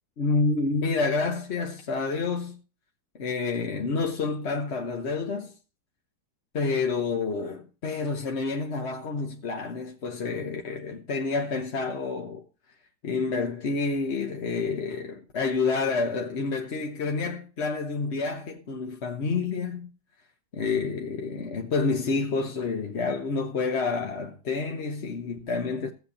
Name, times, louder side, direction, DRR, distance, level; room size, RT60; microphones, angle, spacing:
voice 1, 0.2-2.6 3.2-5.5 6.5-12.4 13.0-19.9 20.5-25.9, left 4 dB, 45° left, 1.0 m, -28 dB
16.5 x 7.9 x 2.8 m
omnidirectional pair, 2.0 m